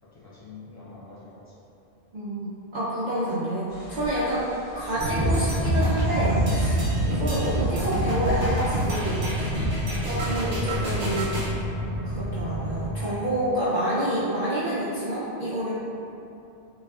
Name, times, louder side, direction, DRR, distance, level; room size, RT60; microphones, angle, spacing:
voice 1, 0.0-1.6 7.0-7.1 9.4-10.1, left 4 dB, 30° left, -8 dB, 0.3 m, -44 dB
voice 2, 2.1-4.4 4.8-9.5 10.1-11.3 12.0-15.7, right 1 dB, 50° right, -10 dB, 0.5 m, -28 dB
sound 1, 3.7-9.9, right 1 dB, 55° left, 1.6 m, -45 dB
sound 2, 4.9-12.9, equal, 75° left, 1.2 m, -31 dB
sound 3, 5.0-11.5, right 1 dB, 85° right, 1.1 m, -27 dB
3.4 x 3.1 x 2.3 m, 2.8 s
omnidirectional pair, 1.2 m